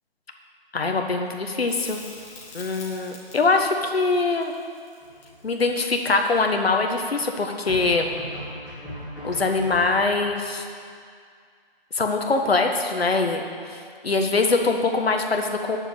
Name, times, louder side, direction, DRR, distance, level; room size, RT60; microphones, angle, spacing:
voice 1, 0.7-2.0 2.5-4.5 5.4-8.1 9.2-10.6 11.9-13.4 13.7-13.8 14.0-15.8, left 3 dB, 85° left, 3 dB, 1.4 m, -23 dB
Crackle, 1.7-6.8 9.5-9.6, left 3 dB, 30° left, 1.8 m, -46 dB
sound 1, 5.0-5.6 7.7-10.3, equal, 5° right, 2.1 m, -38 dB
8.1 x 6.9 x 8.4 m, 2.1 s
hypercardioid pair, 165°, 30 cm